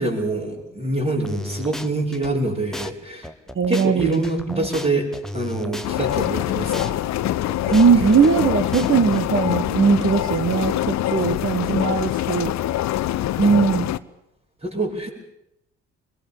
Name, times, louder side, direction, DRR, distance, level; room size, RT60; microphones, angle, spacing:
voice 1, 0.0-3.3 3.7-5.1 5.3-7.0 7.7-7.8 14.6-15.1, right 2 dB, 20° right, -7 dB, 5.8 m, -25 dB
sound 1, 1.2-2.3 2.7-2.9 3.2-6.3 6.7-6.9 7.2-9.2, left 1 dB, ahead, 1.6 m, -35 dB
voice 2, 3.5-4.7 7.7-12.5 13.4-13.9, right 6 dB, 35° right, 9 dB, 1.7 m, -19 dB
sound 2, 5.8-14.0, left 13 dB, 55° left, 0.8 m, -24 dB
25.0 x 21.5 x 7.1 m, 0.83 s
hypercardioid pair, 45°, 33 cm